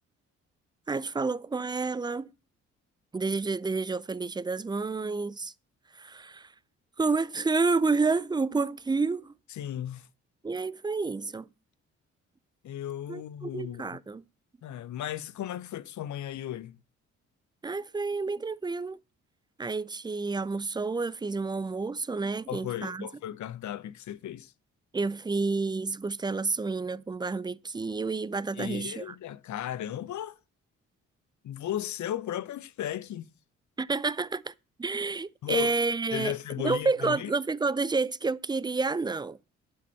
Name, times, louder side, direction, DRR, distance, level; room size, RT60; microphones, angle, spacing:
voice 1, 0.9-2.3 3.1-5.5 6.0-6.5 7.0-9.3 10.4-11.5 13.1-14.2 17.6-19.0 19.6-23.1 24.9-29.2 33.8-34.5 34.8-36.3 36.6-39.4, right 4 dB, 15° right, 0.4 m, -29 dB
voice 2, 9.5-10.1 12.6-14.0 14.6-16.8 22.5-24.5 28.5-30.4 31.4-33.3 35.4-35.7 36.1-37.3, left 11 dB, 55° left, 0.7 m, -35 dB
9.9 x 5.0 x 5.5 m
hypercardioid pair, 45°, 35 cm